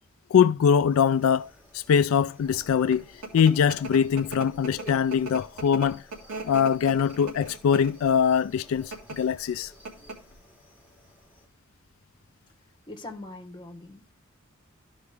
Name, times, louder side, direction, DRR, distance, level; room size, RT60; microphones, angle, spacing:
voice 1, 0.3-1.5 1.7-3.0 3.3-6.0 6.4-9.7, left 7 dB, 70° left, 0.3 m, -22 dB
sound 1, 0.9-11.5, equal, 10° right, 3.3 m, -54 dB
sound 2, 2.6-8.1 8.8-9.2 9.5-9.6 9.9-10.3, right 3 dB, 75° right, 2.2 m, -38 dB
voice 2, 12.9-14.1, left 2 dB, 20° left, 1.2 m, -42 dB
13.0 x 4.7 x 3.3 m
head